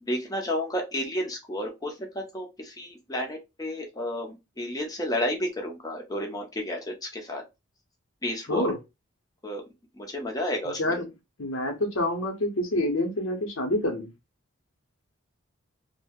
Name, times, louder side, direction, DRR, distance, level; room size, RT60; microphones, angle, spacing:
voice 1, 0.0-7.4 8.2-8.7 9.4-9.6 9.9-10.8, left 1 dB, 15° left, 0.6 m, -31 dB
voice 2, 10.6-11.1 11.4-14.1, left 1 dB, 70° left, 0.8 m, -27 dB
2.6 x 2.1 x 3.4 m
head